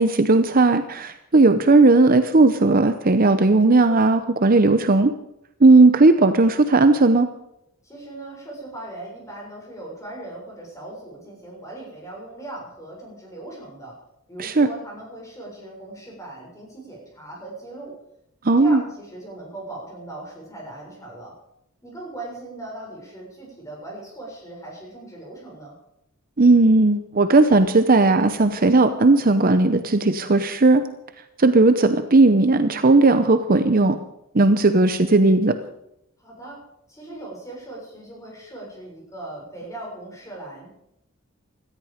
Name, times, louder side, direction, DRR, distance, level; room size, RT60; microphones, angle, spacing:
voice 1, 0.0-5.1 5.6-7.3 14.4-14.7 18.4-18.8 26.4-30.8 31.4-34.0 34.3-35.6, right 3 dB, 40° right, 9 dB, 0.8 m, -16 dB
voice 2, 7.8-14.0 14.3-17.9 18.6-21.3 21.8-25.7 36.2-36.6 36.9-40.7, right 2 dB, 15° left, -2 dB, 6.7 m, -39 dB
17.5 x 13.5 x 5.1 m, 0.81 s
head